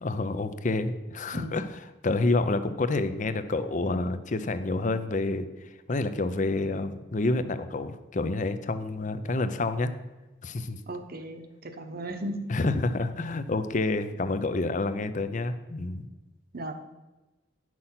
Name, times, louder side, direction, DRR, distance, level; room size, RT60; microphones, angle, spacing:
voice 1, 0.0-9.9 10.4-10.8 12.5-16.1, left 2 dB, 40° left, 11 dB, 0.6 m, -28 dB
voice 2, 1.3-1.6 10.9-12.3 16.5-16.7, right 1 dB, 55° right, 6 dB, 1.1 m, -36 dB
10.0 x 6.2 x 5.7 m, 1.1 s
head